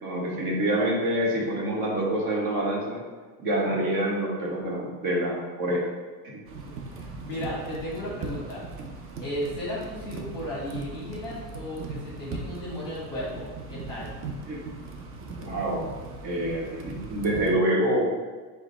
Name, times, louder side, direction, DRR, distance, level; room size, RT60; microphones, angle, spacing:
voice 1, 0.0-3.0 3.4-5.9 6.2-6.4 14.5-14.6 15.4-15.9 16.2-18.1, right 1 dB, 50° right, -3 dB, 1.3 m, -26 dB
sound 1, 6.5-17.5, right 3 dB, 30° right, 0.4 m, -39 dB
voice 2, 6.6-8.8 9.2-14.1, left 1 dB, 5° left, -7 dB, 1.1 m, -35 dB
4.9 x 2.2 x 4.0 m, 1.4 s
supercardioid pair, 130°, 47 cm